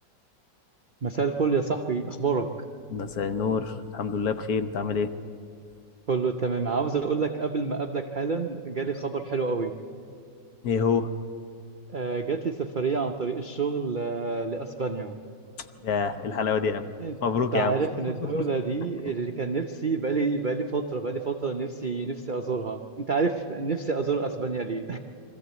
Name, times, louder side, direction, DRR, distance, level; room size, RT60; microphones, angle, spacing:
voice 1, 1.0-2.5 6.1-9.7 11.9-15.2 17.0-17.2 17.5-25.0, right 4 dB, 70° right, 4 dB, 0.4 m, -28 dB
voice 2, 2.9-5.1 10.6-11.1 15.8-16.9 17.2-17.8 18.3-18.4, left 5 dB, 60° left, 9 dB, 1.2 m, -26 dB
23.0 x 14.0 x 8.1 m, 2.3 s
omnidirectional pair, 2.0 m